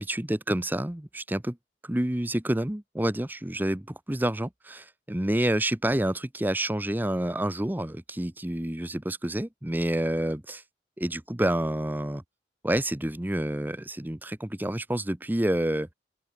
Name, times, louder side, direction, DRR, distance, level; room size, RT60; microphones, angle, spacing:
voice 1, 0.0-1.6 1.8-10.6 11.0-12.2 12.6-15.9, right 1 dB, 10° right, 0.8 m, -28 dB
open air
head